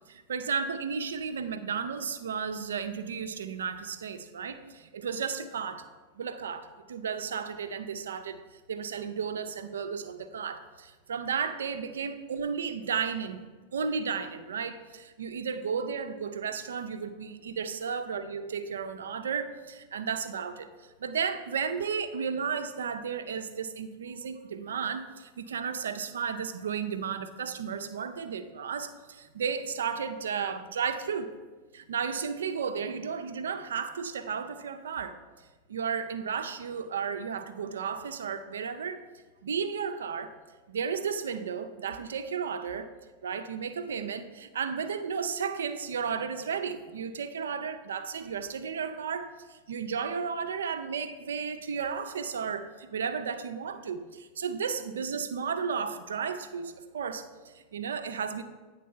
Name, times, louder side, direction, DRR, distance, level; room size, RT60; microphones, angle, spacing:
voice 1, 0.1-5.9 6.1-8.4 8.7-13.4 13.7-20.7 21.0-31.3 31.7-35.2 35.7-39.0 39.4-40.3 40.7-42.9 43.2-58.4, right 6 dB, 65° right, 9 dB, 0.5 m, -33 dB
9.2 x 3.9 x 5.5 m, 1.3 s
figure-of-eight pair, 90°, 0 cm